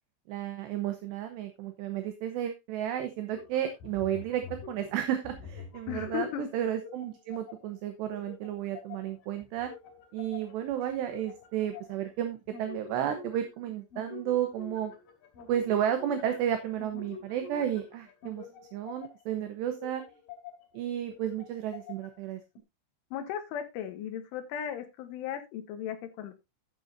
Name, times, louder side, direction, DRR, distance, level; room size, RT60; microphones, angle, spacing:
voice 1, 0.3-4.4 4.7-9.7 10.1-14.9 15.5-18.4 18.7-20.0 20.7-22.4, right 10 dB, 75° right, 7 dB, 2.7 m, -32 dB
sound 1, 3.3-7.7 8.1-12.1 12.5-13.6 13.9-19.2 19.7-20.8 21.1-22.2 22.6-22.7, left 6 dB, 50° left, 3.6 m, -47 dB
voice 2, 5.9-6.5 23.1-26.3, left 10 dB, 75° left, 7 dB, 3.6 m, -36 dB
11.5 x 9.3 x 2.6 m, 0.22 s
omnidirectional pair, 5.9 m